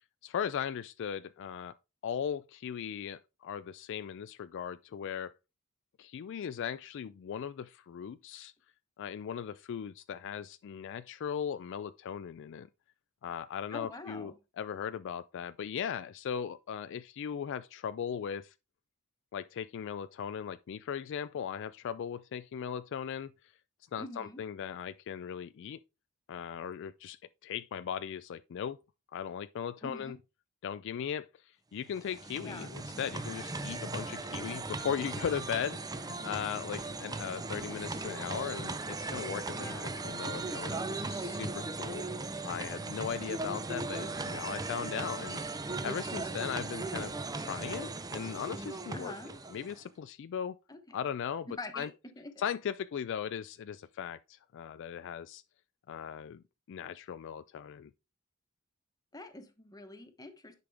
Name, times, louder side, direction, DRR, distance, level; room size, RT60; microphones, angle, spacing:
voice 1, 0.2-1.7 2.0-5.3 6.0-8.5 9.0-12.7 13.2-18.5 19.3-23.5 23.9-25.8 26.3-28.8 29.1-30.2 30.6-42.0 42.4-45.4 45.8-49.1 49.5-50.6 50.9-51.5 51.7-51.9 52.4-55.4 55.9-57.9, left 8 dB, 55° left, 0.3 m, -38 dB
voice 2, 13.7-14.4 24.0-24.4 29.8-30.2 32.4-32.8 39.5-40.0 48.9-49.3 50.7-51.0 51.5-52.3 59.1-60.5, left 2 dB, 15° left, 1.1 m, -45 dB
sound 1, 31.8-49.9, right 3 dB, 15° right, 0.5 m, -38 dB
10.5 x 5.3 x 3.4 m
head